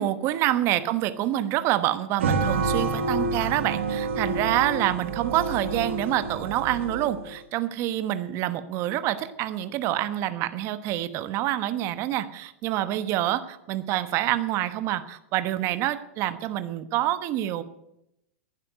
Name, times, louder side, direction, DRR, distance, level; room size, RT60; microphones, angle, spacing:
voice 1, 0.0-17.6, right 13 dB, 45° right, 12 dB, 1.1 m, -27 dB
sound 1, 2.2-7.3, right 3 dB, 80° right, 1.7 m, -28 dB
11.5 x 10.0 x 8.1 m, 0.82 s
hypercardioid pair, 110°, 7 cm